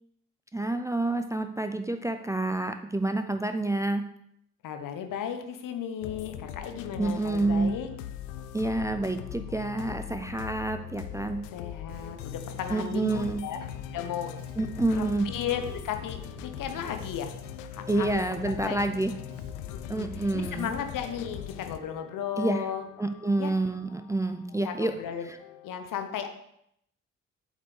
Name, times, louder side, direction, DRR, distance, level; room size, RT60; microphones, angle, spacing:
voice 1, 0.5-4.1 7.0-7.8 8.5-11.5 12.7-13.5 14.6-15.3 17.9-19.1 19.9-20.7 22.4-22.6 23.0-25.0 25.3-25.4, right 2 dB, 10° right, 7 dB, 0.5 m, -28 dB
voice 2, 4.6-7.9 11.5-13.7 13.9-14.3 14.9-17.3 17.7-18.8 19.7-22.9 23.4-23.5 24.6-25.3 25.6-26.3, left 8 dB, 55° left, 7 dB, 0.9 m, -35 dB
sound 1, 6.0-25.7, left 12 dB, 75° left, 0.5 m, -41 dB
Bass guitar, 11.9-21.8, equal, 65° right, 1.7 m, -49 dB
8.3 x 5.5 x 3.3 m, 0.74 s
hypercardioid pair, 40°, 38 cm